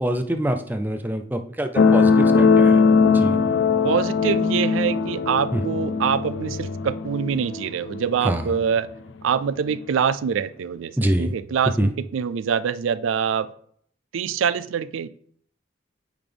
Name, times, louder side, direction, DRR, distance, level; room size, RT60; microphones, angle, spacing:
voice 1, 0.0-2.8 3.1-3.4 5.5-5.6 8.2-8.5 11.0-11.3 11.8-11.9, right 1 dB, 10° right, 6 dB, 0.4 m, -25 dB
sound 1, 1.8-8.8 9.7-9.8, left 5 dB, 65° left, 0.4 m, -20 dB
voice 2, 3.8-8.9 9.2-13.5 14.1-15.1, right 7 dB, 85° right, 15 dB, 0.3 m, -25 dB
9.0 x 4.0 x 3.4 m, 0.63 s
head